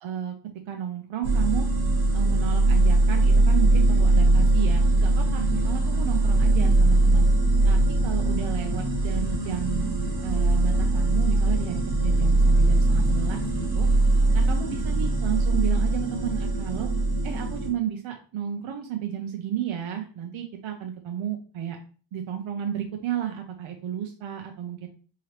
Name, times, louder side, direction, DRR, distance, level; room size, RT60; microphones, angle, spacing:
voice 1, 0.0-0.4 0.7-1.7 2.1-7.2 7.6-13.9 14.3-16.9 17.2-21.8 22.1-24.9, right 10 dB, 75° right, 3 dB, 0.6 m, -32 dB
sound 1, 1.2-17.7, right 2 dB, 50° right, 1.5 m, -21 dB
3.7 x 2.9 x 3.2 m, 0.39 s
wide cardioid pair, 175°, 47 cm